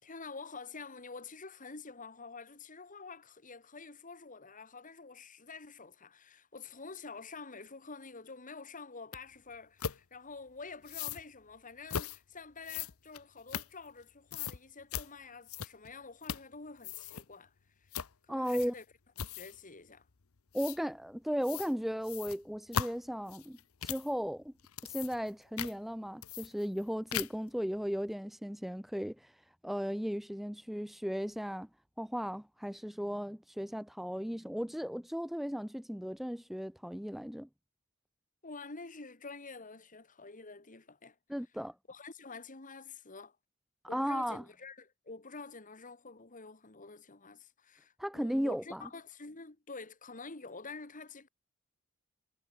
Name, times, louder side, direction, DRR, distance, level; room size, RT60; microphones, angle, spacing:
voice 1, 0.0-17.5 17.8-17.9 18.2-18.8 19.2-20.1 38.4-41.2 41.9-43.4 43.9-51.3, left 4 dB, 40° left, 1.9 m, -48 dB
sound 1, 9.1-9.2 9.8-10.0 10.8-11.2 11.9-12.2 12.6-14.0 14.3-14.6 14.9-15.1 15.5-15.9 16.2-16.5 16.8-17.2 17.9-18.1 18.5-18.8 19.2-19.6 20.5-20.8 21.4-21.7 22.0-24.1 24.6-25.3 25.6-25.7 26.2-26.8 27.1-27.5, left 8 dB, 75° left, 0.9 m, -38 dB
voice 2, 18.3-18.7 20.5-24.5 24.8-29.4 29.6-31.7 32.0-37.5 41.3-41.7 43.9-44.4 48.0-48.9, equal, ahead, 0.5 m, -36 dB
head